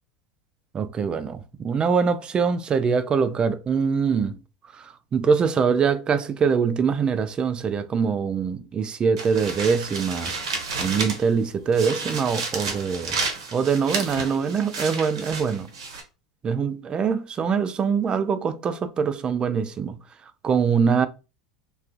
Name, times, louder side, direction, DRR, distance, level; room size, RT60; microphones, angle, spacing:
voice 1, 0.7-4.4 4.7-10.3 10.8-13.2 13.5-15.7 16.4-20.0 20.4-21.1, right 6 dB, 30° right, 0.3 m, -23 dB
sound 1, 9.2-11.4 11.7-16.0, right 4 dB, 70° right, 0.7 m, -31 dB
2.3 x 2.3 x 2.5 m
figure-of-eight pair, 80°, 3 cm